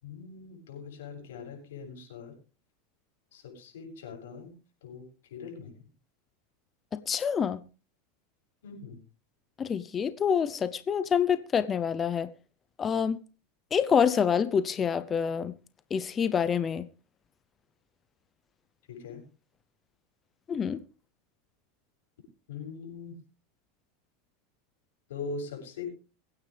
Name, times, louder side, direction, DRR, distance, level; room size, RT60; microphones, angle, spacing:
voice 1, 0.0-2.4 3.3-4.5 4.8-5.1 5.3-5.7 8.6-9.0 18.9-19.2 22.5-23.1 25.1-26.0, left 4 dB, 90° left, 7.5 m, -41 dB
voice 2, 6.9-7.6 9.6-12.3 12.8-13.2 13.7-15.5 15.9-16.9 20.5-20.8, left 7 dB, 25° left, 0.7 m, -27 dB
23.5 x 9.7 x 3.4 m
supercardioid pair, 140°, 0 cm